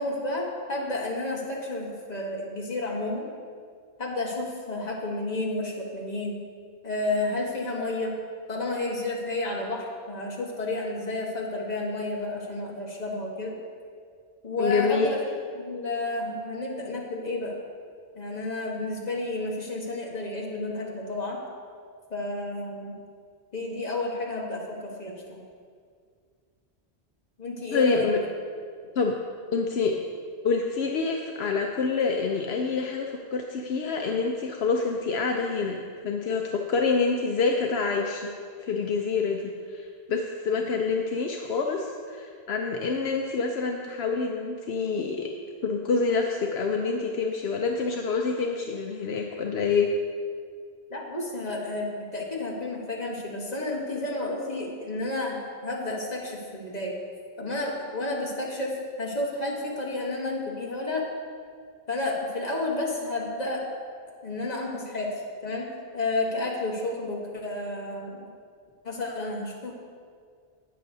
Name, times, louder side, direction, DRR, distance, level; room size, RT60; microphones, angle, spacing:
voice 1, 0.0-3.3 4.0-6.4 6.8-8.2 8.5-13.5 14.4-15.2 15.5-17.5 18.1-21.4 22.1-22.9 23.5-25.4 27.4-28.1 50.9-56.9 57.4-61.0 61.9-63.6 64.2-65.1 65.4-68.3 68.8-69.7, left 2 dB, 40° left, -2 dB, 1.6 m, -31 dB
voice 2, 14.6-15.2 27.7-28.2 29.0-29.2 29.5-29.9 30.4-38.3 38.6-45.3 45.6-49.9, left 4 dB, 75° left, 2 dB, 0.9 m, -27 dB
18.5 x 6.7 x 2.7 m, 2.1 s
omnidirectional pair, 1.1 m